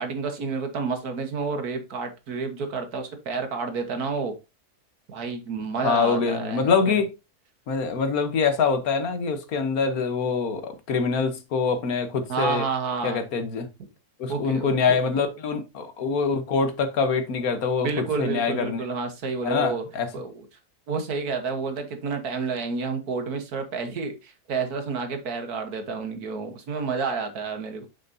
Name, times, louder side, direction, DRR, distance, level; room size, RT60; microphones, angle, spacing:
voice 1, 0.0-4.3 5.1-6.7 12.3-13.2 14.3-15.0 17.8-19.8 20.1-20.5 20.9-27.9, right 4 dB, 75° right, 1.8 m, -30 dB
voice 2, 5.8-7.1 7.7-12.6 13.0-13.7 14.2-17.9 18.2-18.8 19.4-20.1, left 5 dB, 70° left, 1.5 m, -24 dB
6.6 x 6.4 x 2.7 m
omnidirectional pair, 1.6 m